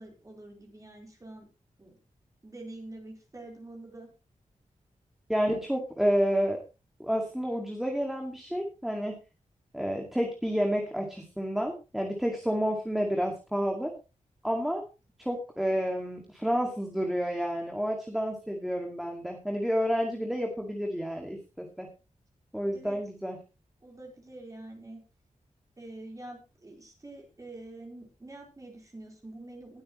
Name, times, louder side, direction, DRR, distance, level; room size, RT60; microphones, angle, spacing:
voice 1, 0.0-1.5 1.8-2.0 2.4-4.1 22.7-23.0 23.8-25.0 25.8-29.8, right 2 dB, 25° right, 0 dB, 4.2 m, -46 dB
voice 2, 5.3-6.6 7.0-9.2 9.7-13.9 14.4-14.8 15.2-21.9 22.5-23.4, equal, ahead, 1 dB, 2.2 m, -30 dB
20.0 x 8.7 x 3.1 m, 0.30 s
wide cardioid pair, 120°, 13 cm